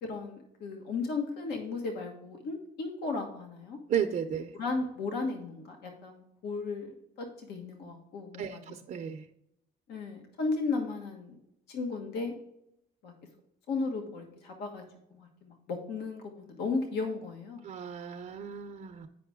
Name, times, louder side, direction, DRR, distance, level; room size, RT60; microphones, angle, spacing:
voice 1, 0.0-3.8 4.5-8.6 9.9-11.3 11.7-12.3 13.0-13.1 13.7-14.8 15.1-17.7, left 3 dB, 75° left, 3 dB, 1.4 m, -35 dB
voice 2, 3.9-4.5 8.4-9.3 17.6-19.1, right 8 dB, 50° right, 6 dB, 0.6 m, -34 dB
9.2 x 5.3 x 3.6 m, 0.80 s
cardioid pair, 110°, 17 cm